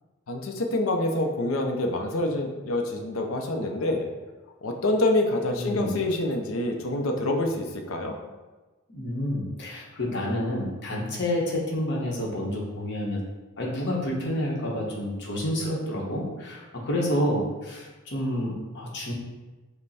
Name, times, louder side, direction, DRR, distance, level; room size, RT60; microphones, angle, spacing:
voice 1, 0.3-4.1 4.6-8.2, left 1 dB, 75° left, 3 dB, 0.6 m, -26 dB
voice 2, 5.5-6.0 8.9-13.2 13.6-19.1, left 1 dB, 55° left, -3 dB, 1.0 m, -29 dB
5.3 x 2.2 x 4.1 m, 1.2 s
head